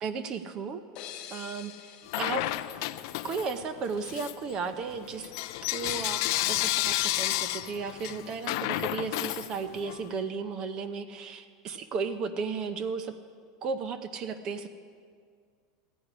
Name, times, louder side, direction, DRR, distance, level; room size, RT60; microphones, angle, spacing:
voice 1, 0.0-0.8 1.3-2.4 3.2-5.3 5.7-13.1 13.6-14.7, right 5 dB, 35° right, 10 dB, 0.6 m, -34 dB
sound 1, 1.0-3.7, left 9 dB, 40° left, 0.9 m, -47 dB
Bell / Coin (dropping), 2.1-3.6 4.0-10.0, left 17 dB, 65° left, 0.4 m, -31 dB
14.0 x 9.7 x 4.9 m, 2.1 s
supercardioid pair, 150°, 2 cm